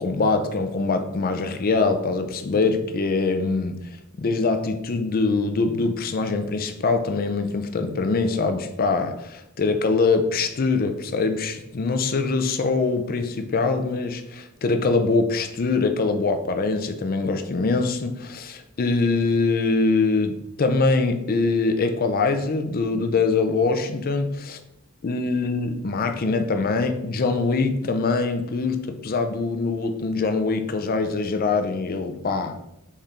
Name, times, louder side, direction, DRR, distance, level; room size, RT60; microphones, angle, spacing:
voice 1, 0.0-24.6 25.0-32.6, left 3 dB, 40° left, 7 dB, 0.5 m, -23 dB
4.2 x 3.4 x 3.7 m, 0.83 s
head